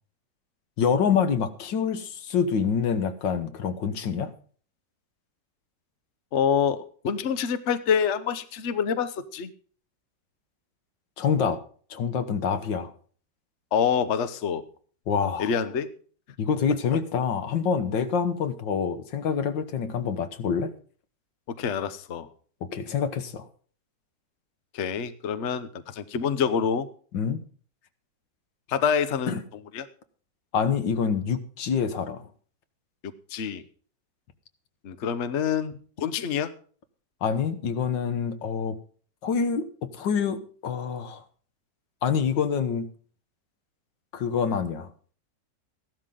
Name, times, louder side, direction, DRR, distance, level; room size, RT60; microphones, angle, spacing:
voice 1, 0.8-4.3 11.2-11.6 11.9-12.9 15.1-15.5 16.4-20.7 22.7-23.5 27.1-27.4 29.3-29.4 30.5-32.2 37.2-38.8 39.2-41.2 42.0-42.9 44.1-44.9, left 6 dB, 90° left, 10 dB, 1.9 m, -26 dB
voice 2, 6.3-9.5 13.7-14.6 15.4-15.9 21.5-22.3 24.7-26.9 28.7-29.4 29.7-29.9 33.0-33.6 34.8-36.5, left 7 dB, 50° left, 12 dB, 1.0 m, -26 dB
15.0 x 12.0 x 3.8 m, 0.43 s
omnidirectional pair, 1.9 m